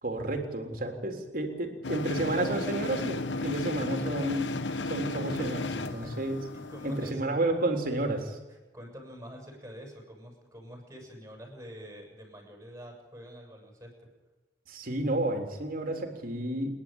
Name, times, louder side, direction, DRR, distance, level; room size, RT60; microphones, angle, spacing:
voice 1, 0.0-4.5 4.8-6.4 6.8-8.4 14.7-16.8, right 2 dB, 50° right, 4 dB, 3.6 m, -31 dB
sound 1, 1.8-7.1, left 2 dB, 75° left, 1.2 m, -34 dB
voice 2, 5.8-7.6 8.5-14.1, equal, 15° right, 1 dB, 7.0 m, -47 dB
28.0 x 11.5 x 8.9 m, 1.2 s
head